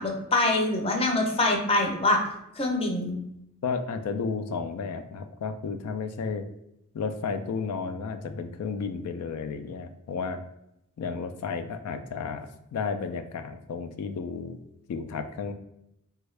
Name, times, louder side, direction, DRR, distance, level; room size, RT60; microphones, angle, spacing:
voice 1, 0.0-2.2 2.6-3.1, left 2 dB, 25° left, 1 dB, 0.6 m, -24 dB
voice 2, 3.6-6.4 6.9-10.4 11.0-12.5 12.7-14.6 14.9-15.5, left 5 dB, 85° left, 7 dB, 0.3 m, -32 dB
3.4 x 2.3 x 3.1 m, 0.82 s
head